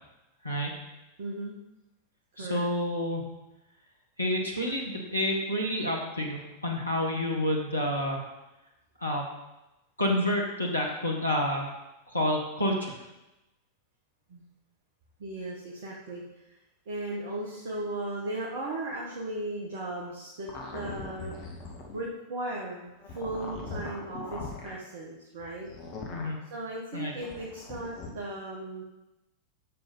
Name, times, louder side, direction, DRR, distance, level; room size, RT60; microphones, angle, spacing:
voice 1, 1.2-1.6 2.4-2.7 14.3-14.4 15.2-16.2 16.8-21.3 21.9-25.7 26.5-28.8, right 2 dB, 55° right, -3 dB, 1.7 m, -36 dB
voice 2, 2.4-3.2 4.2-8.2 9.0-9.2 10.0-11.6 12.1-13.0 26.1-26.4 26.9-27.1, left 1 dB, 85° left, 0 dB, 1.5 m, -29 dB
sound 1, 20.5-22.1 23.0-24.7 25.7-26.3 27.1-28.1, left 3 dB, 40° left, 2.1 m, -40 dB
10.5 x 6.8 x 4.0 m, 0.97 s
figure-of-eight pair, 90°, 0 cm